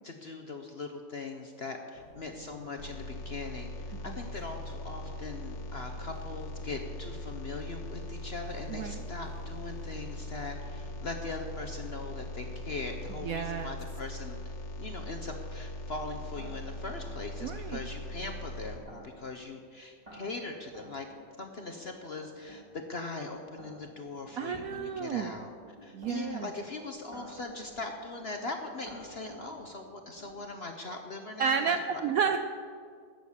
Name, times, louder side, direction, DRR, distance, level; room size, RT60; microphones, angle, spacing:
voice 1, 0.0-21.1 21.4-25.5 25.8-32.0, left 3 dB, 50° left, 4 dB, 0.8 m, -40 dB
sound 1, 1.9-13.2, right 1 dB, 45° right, 3.4 m, -54 dB
sound 2, 2.8-18.8, left 1 dB, 90° left, 2.1 m, -40 dB
voice 2, 8.7-9.0 13.2-13.8 17.4-17.8 24.4-25.3 25.9-26.5 31.4-32.4, right 6 dB, 70° right, 8 dB, 0.8 m, -31 dB
sound 3, 15.9-30.6, right 1 dB, 20° right, 3.3 m, -54 dB
12.5 x 7.3 x 8.3 m, 2.1 s
omnidirectional pair, 2.0 m